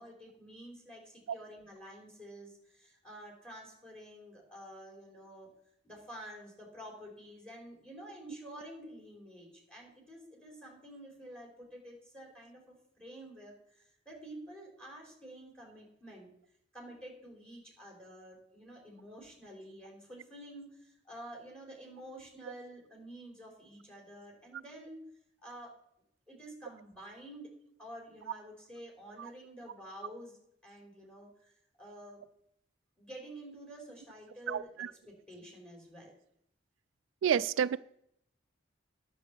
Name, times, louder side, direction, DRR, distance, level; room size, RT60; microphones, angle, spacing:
voice 1, 0.0-5.5 5.8-16.3 16.7-25.0 25.4-25.8 26.3-27.5 27.8-30.4 30.6-32.2 33.0-34.7 35.1-36.1, right 1 dB, 5° left, 3.6 m, -49 dB
voice 2, 34.5-34.9 37.2-37.8, right 8 dB, 85° right, 0.3 m, -29 dB
10.5 x 6.8 x 6.9 m
head